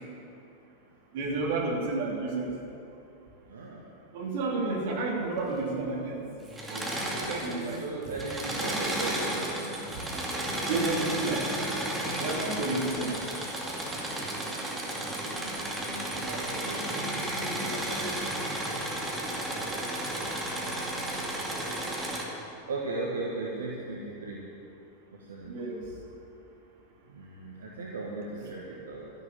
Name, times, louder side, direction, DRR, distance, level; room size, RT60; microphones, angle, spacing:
voice 1, 1.1-2.5 4.1-7.8 9.9-10.0 10.7-11.5 12.2-13.2 25.5-25.8, right 3 dB, 50° right, -1 dB, 2.9 m, -31 dB
voice 2, 3.5-3.8 4.8-4.9 7.2-9.8 10.4-11.2 15.1-17.9 22.7-24.4 25.2-25.5 27.1-29.1, right 2 dB, 65° right, -3 dB, 1.6 m, -38 dB
Engine / Mechanisms, 6.5-7.8 8.1-22.2, right 1 dB, 10° right, 2.4 m, -33 dB
13.0 x 11.0 x 7.8 m, 2.8 s
figure-of-eight pair, 90°, 0 cm